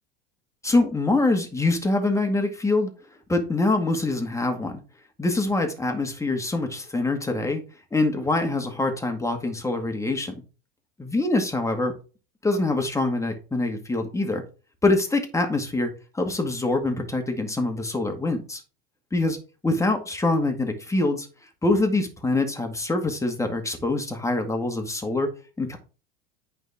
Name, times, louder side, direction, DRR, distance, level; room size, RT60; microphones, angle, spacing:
voice 1, 0.6-2.9 3.3-4.8 5.2-7.6 7.9-10.3 11.0-11.9 12.4-14.4 14.8-18.6 19.1-19.4 19.6-21.3 21.6-25.3 25.6-25.8, left 2 dB, 10° left, 5 dB, 2.0 m, -24 dB
9.2 x 5.4 x 3.6 m, 0.34 s
hypercardioid pair, 95°, 30 cm